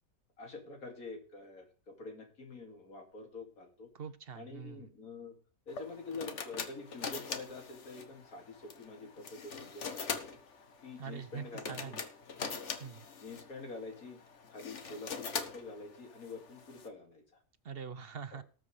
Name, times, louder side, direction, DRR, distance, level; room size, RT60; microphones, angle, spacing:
voice 1, 0.4-3.9 4.3-5.3 5.7-10.2 10.8-11.9 13.2-14.2 14.5-17.2 18.3-18.4, left 3 dB, 80° left, 3 dB, 2.9 m, -46 dB
voice 2, 3.9-4.9 11.0-12.0 12.8-13.1 17.6-18.4, right 6 dB, 50° right, 12 dB, 0.8 m, -44 dB
sound 1, 5.7-16.9, left 5 dB, 55° left, 1.4 m, -43 dB
19.0 x 7.4 x 3.3 m, 0.38 s
omnidirectional pair, 1.5 m